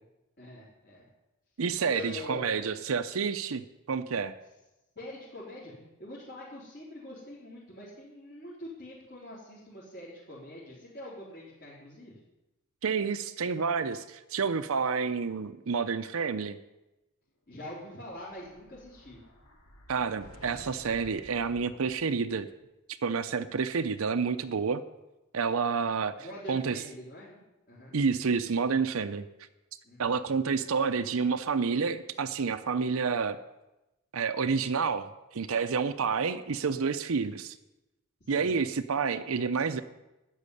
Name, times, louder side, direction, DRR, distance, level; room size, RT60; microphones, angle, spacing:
voice 1, 0.4-1.1 1.9-2.7 5.0-12.1 17.5-19.2 26.2-28.0 29.8-30.1 38.3-38.5, left 1 dB, 50° left, -9 dB, 3.8 m, -44 dB
voice 2, 1.6-4.3 12.8-16.6 19.9-22.5 22.9-24.8 25.3-26.1 26.5-26.8 27.9-29.2 30.0-33.4 34.1-37.6 38.3-39.8, right 5 dB, 70° right, 9 dB, 0.6 m, -29 dB
Explosion, 17.8-22.4, equal, 85° left, 2.8 m, -53 dB
12.0 x 7.4 x 9.9 m, 0.99 s
head